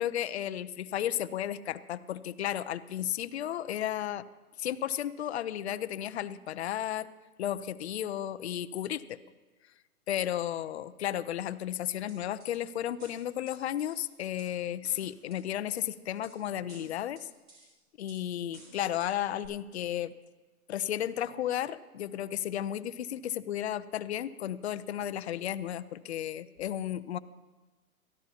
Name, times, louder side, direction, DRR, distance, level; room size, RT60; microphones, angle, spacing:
voice 1, 0.0-4.2 4.6-7.1 7.4-9.2 10.1-17.3 18.0-20.1 20.7-27.2, left 11 dB, 45° left, 13 dB, 0.6 m, -33 dB
sound 1, 12.1-12.6 13.0-14.5 14.8-15.4 15.8-16.3 16.7-17.7 18.1-18.2 18.5-19.1 19.4-19.5, right 2 dB, 20° right, 5.1 m, -54 dB
22.0 x 14.0 x 2.9 m, 1.2 s
hypercardioid pair, 140°, 44 cm